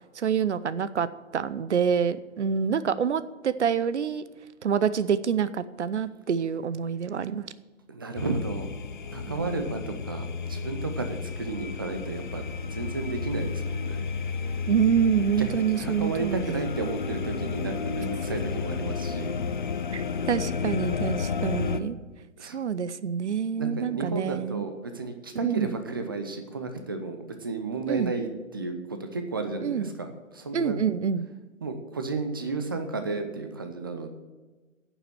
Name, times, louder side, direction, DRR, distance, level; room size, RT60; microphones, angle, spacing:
voice 1, 0.1-1.1 1.3-4.2 4.6-7.5 9.3-9.5 14.7-16.6 19.9-22.0 22.4-24.7 25.4-25.7 27.9-28.1 29.6-29.9 30.5-31.2, right 7 dB, 60° right, 15 dB, 0.7 m, -27 dB
voice 2, 7.9-8.7 9.1-14.0 15.2-19.4 22.4-22.6 23.6-30.8 31.6-34.1, right 3 dB, 20° right, 7 dB, 0.5 m, -33 dB
sound 1, 8.2-21.8, left 5 dB, 40° left, 0.6 m, -32 dB
9.7 x 7.1 x 7.7 m, 1.3 s
figure-of-eight pair, 150°, 40 cm